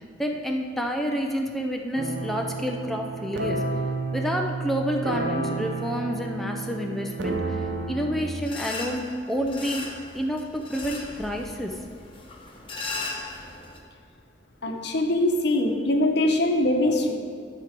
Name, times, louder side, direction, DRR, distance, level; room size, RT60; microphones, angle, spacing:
voice 1, 0.0-3.6 4.1-9.9 10.1-11.8, equal, ahead, 1 dB, 0.5 m, -29 dB
sound 1, 2.0-8.3, right 3 dB, 70° right, 0.8 m, -31 dB
sound 2, 8.4-13.8, left 3 dB, 30° left, 1.0 m, -37 dB
voice 2, 14.6-17.1, left 1 dB, 65° left, 3 dB, 0.9 m, -22 dB
11.5 x 4.7 x 5.1 m, 2.2 s
head